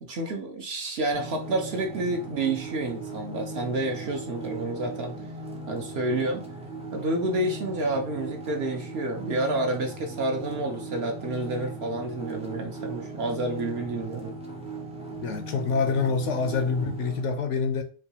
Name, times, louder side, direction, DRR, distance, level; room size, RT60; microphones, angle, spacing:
voice 1, 0.0-5.1 5.7-6.5 6.9-14.3, right 2 dB, 55° right, 0.8 m, -29 dB
sound 1, 1.1-17.2, right 2 dB, 10° right, 0.3 m, -38 dB
voice 2, 15.2-17.8, left 4 dB, 70° left, 0.8 m, -26 dB
4.4 x 2.3 x 2.8 m
omnidirectional pair, 1.4 m